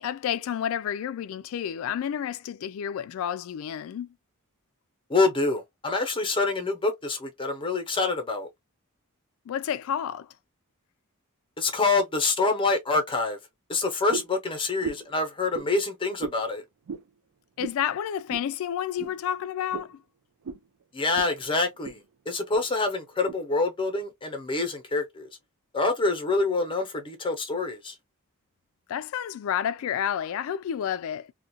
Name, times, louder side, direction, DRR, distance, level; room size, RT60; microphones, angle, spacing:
voice 1, 0.0-4.1 9.5-10.3 17.6-20.0 28.9-31.3, left 9 dB, 70° left, 0.3 m, -30 dB
voice 2, 5.1-8.5 11.6-13.4 13.7-16.6 20.9-22.0 22.3-25.3 25.7-27.9, left 3 dB, 25° left, 0.8 m, -26 dB
sound 1, 14.1-14.4 14.8-15.1 15.5-15.7 16.2-16.4 16.9-17.1 17.6-17.8 18.3-18.5 19.0-19.1 19.7-19.9 20.4-20.6 21.1-21.3 21.6-22.0 22.5-22.7 23.3-23.4, right 5 dB, 70° right, 0.4 m, -35 dB
2.4 x 2.2 x 2.6 m
head